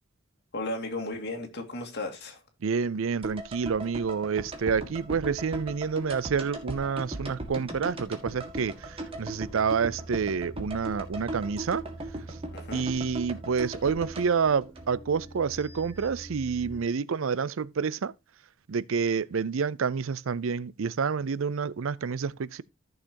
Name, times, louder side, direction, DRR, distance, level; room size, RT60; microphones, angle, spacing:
voice 1, 0.5-2.4 12.5-12.8, left 2 dB, 55° left, 2.2 m, -35 dB
voice 2, 2.6-11.8 12.3-12.4 12.7-18.1 18.7-22.6, right 6 dB, 70° right, 0.5 m, -28 dB
sound 1, 3.2-15.4 15.7-15.8, right 1 dB, 25° right, 2.0 m, -38 dB
sound 2, 8.3-16.8, right 2 dB, 10° right, 1.6 m, -46 dB
14.5 x 6.5 x 2.9 m
head